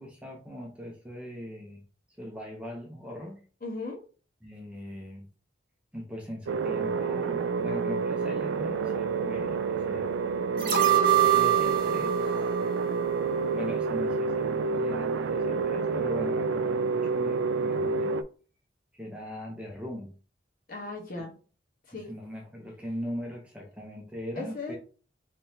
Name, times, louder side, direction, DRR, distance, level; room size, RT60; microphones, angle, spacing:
voice 1, 0.0-1.8 2.2-3.4 4.4-5.3 5.9-10.1 11.1-12.3 13.5-18.1 19.0-20.1 21.2-21.3 21.9-24.8, equal, 5° right, 0 dB, 0.7 m, -39 dB
voice 2, 3.6-4.0 10.5-10.9 20.7-21.4 21.9-22.1 24.4-24.8, left 3 dB, 50° left, -1 dB, 1.1 m, -37 dB
sound 1, 6.5-18.2, right 4 dB, 85° right, 0.3 m, -29 dB
sound 2, 10.6-13.7 14.1-14.2, right 10 dB, 50° right, 0.9 m, -25 dB
3.8 x 3.2 x 2.8 m, 0.38 s
head